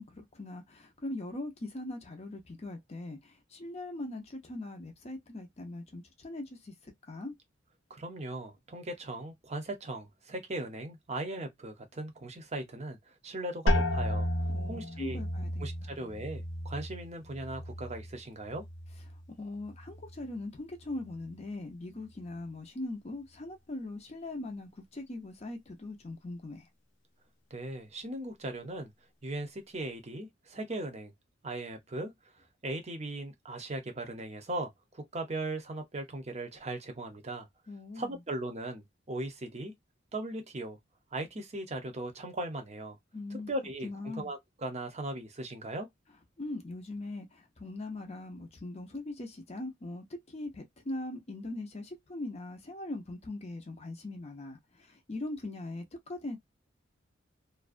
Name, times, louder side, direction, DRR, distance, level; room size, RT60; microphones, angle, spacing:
voice 1, 0.0-7.3 14.5-15.9 19.4-26.7 37.7-38.2 43.1-43.5 43.8-44.3 46.4-56.4, left 2 dB, 35° left, 0.6 m, -41 dB
voice 2, 7.9-13.0 13.2-14.3 14.6-15.2 15.6-18.6 27.5-28.9 29.2-31.1 31.4-32.1 32.6-37.5 38.0-39.7 40.1-40.8 41.1-43.0 43.3-45.9, right 1 dB, 35° right, 0.7 m, -38 dB
sound 1, 13.7-19.3 19.6-20.3 20.9-21.3, left 1 dB, 80° left, 0.7 m, -33 dB
2.5 x 2.1 x 2.4 m
head